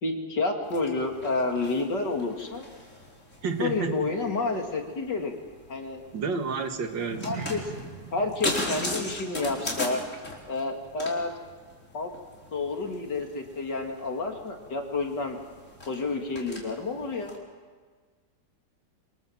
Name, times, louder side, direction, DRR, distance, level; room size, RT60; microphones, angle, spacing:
voice 1, 0.0-2.7 3.6-5.3 5.7-6.0 7.2-7.7 8.1-10.0 10.5-11.4 11.9-12.1 12.5-15.4 15.9-17.3, left 3 dB, 70° left, 2 dB, 3.5 m, -29 dB
sound 1, 0.6-17.4, left 2 dB, 40° left, 5.1 m, -39 dB
voice 2, 3.4-4.1 6.1-7.3, right 4 dB, 90° right, 6 dB, 2.5 m, -30 dB
sound 2, 7.0-11.6 11.9-12.2 12.6-12.7, right 5 dB, 55° right, 2.6 m, -43 dB
27.0 x 26.0 x 7.6 m, 1.5 s
omnidirectional pair, 1.9 m